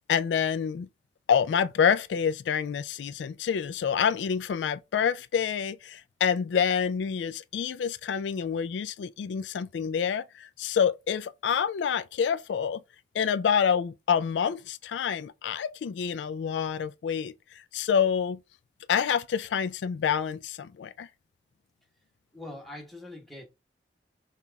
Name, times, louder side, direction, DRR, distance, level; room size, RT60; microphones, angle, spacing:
voice 1, 0.1-0.9 1.3-12.8 13.1-18.4 18.9-21.1, left 7 dB, 85° left, 0.3 m, -27 dB
voice 2, 22.3-23.5, left 1 dB, ahead, 1.2 m, -42 dB
5.6 x 2.4 x 3.4 m
head